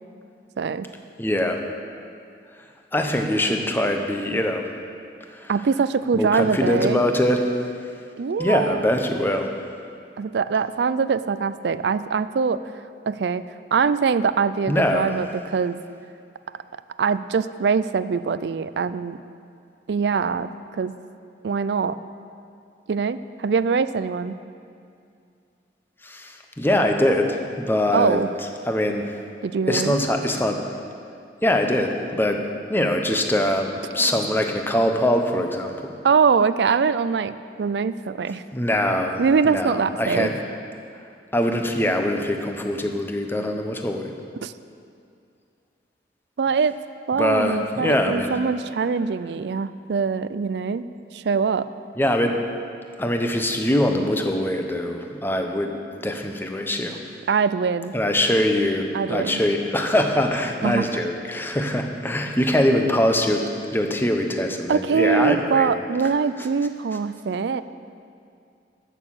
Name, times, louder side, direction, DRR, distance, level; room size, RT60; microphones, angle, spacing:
voice 1, 0.6-0.9 5.5-7.0 8.2-8.9 10.2-12.6 13.1-13.4 13.7-15.8 17.0-19.2 19.9-20.9 21.4-22.0 22.9-24.4 27.9-28.3 29.4-30.0 34.0-34.1 36.0-38.4 39.2-40.3 44.4-44.5 46.4-46.7 47.1-50.8 51.1-51.7 57.3-57.9 58.9-59.4 60.6-60.9 64.7-67.6, right 5 dB, 65° right, 14 dB, 0.4 m, -23 dB
voice 2, 1.2-1.6 2.9-4.7 5.3-5.5 6.1-7.5 8.4-9.5 14.7-15.1 26.0-28.2 28.7-29.2 29.7-30.6 31.4-35.9 38.5-40.4 41.3-44.1 47.2-48.3 52.0-52.4 53.0-55.8 56.0-57.0 57.9-65.7, left 1 dB, 10° left, 4 dB, 0.8 m, -23 dB
13.5 x 6.5 x 7.2 m, 2.4 s
head